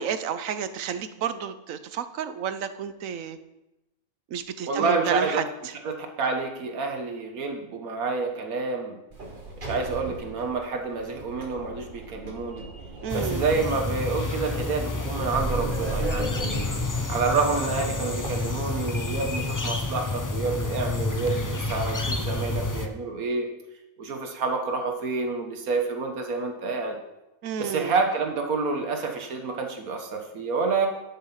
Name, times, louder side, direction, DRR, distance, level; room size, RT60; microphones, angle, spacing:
voice 1, 0.0-3.4 4.3-5.5 13.0-13.4 27.4-27.9, right 7 dB, 70° right, 11 dB, 1.1 m, -31 dB
voice 2, 4.7-5.4 5.8-9.0 9.6-12.7 13.1-16.8 17.1-23.5 24.0-27.0 27.6-30.9, right 4 dB, 90° right, 4 dB, 1.7 m, -28 dB
Sliding door, 9.1-19.3, right 2 dB, 40° right, 1.4 m, -36 dB
sound 1, 13.1-22.9, left 3 dB, 25° left, 0.5 m, -29 dB
11.5 x 6.3 x 5.7 m, 0.95 s
omnidirectional pair, 1.5 m